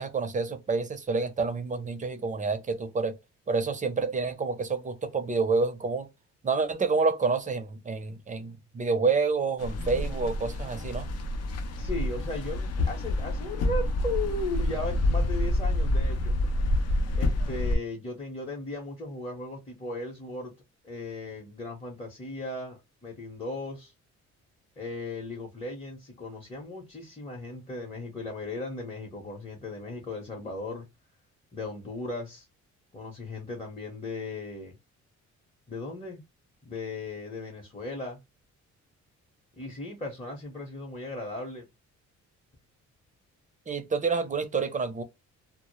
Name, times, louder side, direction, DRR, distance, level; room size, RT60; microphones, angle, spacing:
voice 1, 0.0-3.2 3.5-6.1 6.4-11.1 43.7-45.0, right 4 dB, 25° right, 0.6 m, -28 dB
sound 1, 9.6-17.8, left 1 dB, 55° left, 0.6 m, -28 dB
voice 2, 11.8-16.3 17.2-20.5 20.8-23.9 24.8-30.9 31.5-32.5 32.9-34.8 35.7-36.2 36.6-38.2 39.6-41.7, left 2 dB, 20° left, 0.8 m, -37 dB
2.1 x 2.0 x 2.9 m
cardioid pair, 90°, 30 cm